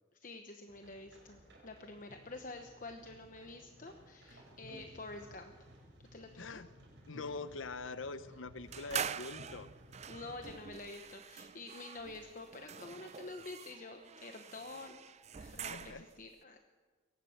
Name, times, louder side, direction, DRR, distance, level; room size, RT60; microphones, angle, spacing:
voice 1, 0.2-5.5 6.1-6.6 10.1-15.0 15.5-16.6, left 3 dB, 45° left, 5 dB, 1.1 m, -48 dB
sound 1, 0.7-10.3, equal, 65° right, 6.5 m, -57 dB
voice 2, 6.4-6.7 7.1-9.7 15.4-16.0, left 3 dB, 85° left, 13 dB, 0.8 m, -44 dB
sound 2, 8.7-16.2, right 7 dB, 35° right, 0.5 m, -45 dB
22.5 x 18.5 x 6.6 m, 1.4 s
head